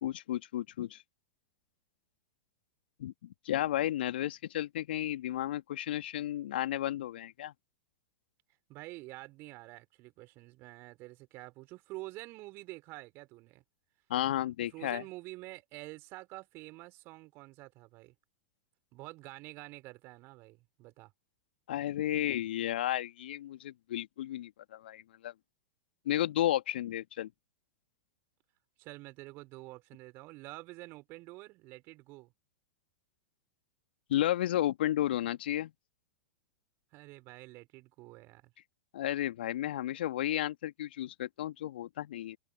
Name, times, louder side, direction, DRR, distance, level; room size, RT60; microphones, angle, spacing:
voice 1, 0.0-1.0 3.0-3.1 3.5-7.5 14.1-15.0 21.7-25.3 26.1-27.3 34.1-35.7 38.9-42.4, left 13 dB, 60° left, 2.1 m, -33 dB
voice 2, 8.7-13.6 14.7-18.1 18.9-21.1 28.8-32.3 36.9-38.5, right 21 dB, 40° right, 4.7 m, -48 dB
figure-of-eight pair, 95°, 6 cm